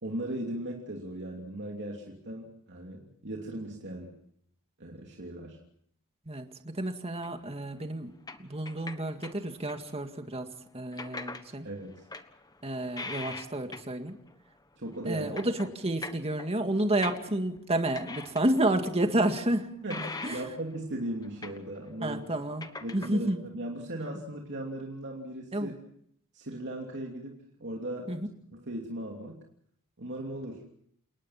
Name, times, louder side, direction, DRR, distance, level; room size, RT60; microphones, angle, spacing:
voice 1, 0.0-4.2 4.8-5.6 11.6-12.0 14.8-15.3 19.8-22.2 22.8-25.7 26.3-28.2 28.5-29.4 30.0-30.6, right 1 dB, 55° right, 0 dB, 2.9 m, -38 dB
voice 2, 6.3-8.1 8.4-11.7 12.6-14.2 15.0-19.7 20.2-20.4 22.0-23.4 25.5-25.7 28.1-28.3, right 1 dB, 30° right, 6 dB, 2.0 m, -30 dB
sound 1, 7.2-7.5 8.3-9.9 10.9-11.4 11.9-14.0 14.3-14.4 14.9-17.6 17.9-18.7 19.0-19.1 19.9-20.8 21.1-21.9 22.2-23.1, left 3 dB, 20° left, 1.4 m, -41 dB
29.0 x 19.0 x 5.9 m, 0.67 s
head